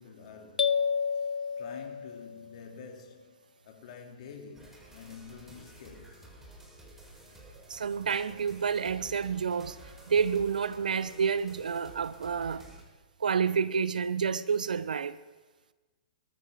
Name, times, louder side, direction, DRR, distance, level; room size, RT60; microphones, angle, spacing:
voice 1, 0.0-6.4, left 6 dB, 50° left, 2.9 m, -49 dB
sound 1, 0.6-2.5, left 6 dB, 75° left, 0.5 m, -30 dB
sound 2, 4.5-12.8, right 1 dB, 10° right, 4.2 m, -52 dB
voice 2, 7.7-9.8 10.1-12.7 13.2-15.2, right 6 dB, 75° right, 0.8 m, -29 dB
21.5 x 13.5 x 3.6 m
figure-of-eight pair, 115°, 5 cm